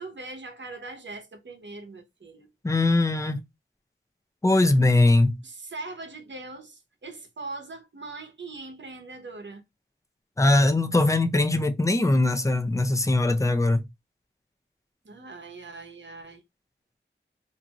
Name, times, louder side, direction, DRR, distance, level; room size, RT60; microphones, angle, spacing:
voice 1, 0.0-2.5 4.5-4.8 5.4-9.6 15.0-16.4, right 3 dB, 65° right, 0.8 m, -41 dB
voice 2, 2.6-3.4 4.4-5.4 10.4-13.8, left 2 dB, 15° left, 0.4 m, -21 dB
2.6 x 2.5 x 2.8 m
wide cardioid pair, 75°, 21 cm